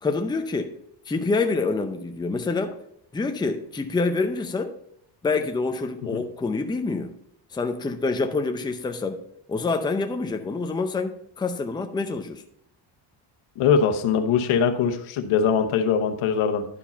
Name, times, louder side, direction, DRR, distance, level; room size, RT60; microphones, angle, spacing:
voice 1, 0.0-0.7 1.1-2.8 3.1-4.7 5.2-7.1 7.5-9.2 9.5-12.4, left 3 dB, 10° left, 0.5 m, -26 dB
voice 2, 13.6-16.7, left 6 dB, 90° left, 1.1 m, -22 dB
11.0 x 4.8 x 4.3 m
cardioid pair, 145°, 48 cm